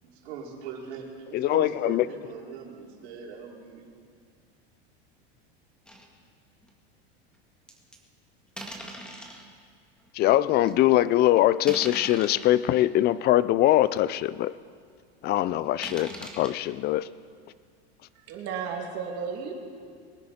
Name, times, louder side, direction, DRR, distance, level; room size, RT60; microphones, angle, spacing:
voice 1, 0.0-3.8, right 6 dB, 80° right, -2 dB, 3.6 m, -41 dB
voice 2, 1.3-2.1 10.1-14.5 15.2-17.1, left 14 dB, 30° left, 18 dB, 0.4 m, -22 dB
sound 1, 5.9-6.1 6.6-6.7 7.7-8.0 8.6-9.4 10.1-10.2 10.7-10.9 11.6-12.6 13.3-13.4 13.8-13.9 14.1-14.2 15.8-16.5, right 1 dB, 5° left, 1.8 m, -40 dB
voice 3, 18.1-19.5, right 6 dB, 50° right, 0 dB, 3.0 m, -33 dB
23.0 x 10.5 x 4.3 m, 2.1 s
supercardioid pair, 125°, 32 cm